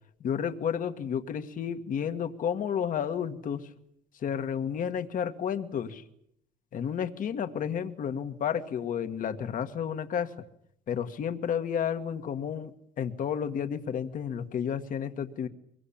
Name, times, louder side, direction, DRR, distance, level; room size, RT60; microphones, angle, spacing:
voice 1, 0.2-3.7 4.2-6.0 6.7-10.3 10.9-12.7 13.0-15.5, left 8 dB, 50° left, 8 dB, 1.7 m, -31 dB
23.5 x 22.5 x 8.7 m, 0.74 s
cardioid pair, 110°, 17 cm